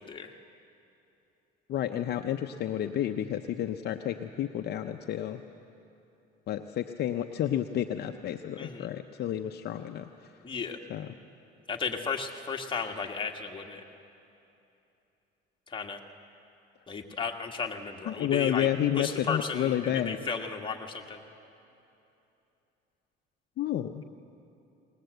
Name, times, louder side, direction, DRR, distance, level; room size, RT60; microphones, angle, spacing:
voice 1, 1.7-5.4 6.5-10.3 10.9-11.1 18.1-20.2 23.6-24.0, left 11 dB, 50° left, 6 dB, 0.7 m, -30 dB
voice 2, 10.4-10.8 11.7-13.8 15.7-16.0 16.9-18.7 19.0-21.2, left 5 dB, 25° left, 2 dB, 1.8 m, -34 dB
20.0 x 19.5 x 7.9 m, 2.9 s
cardioid pair, 105°, 21 cm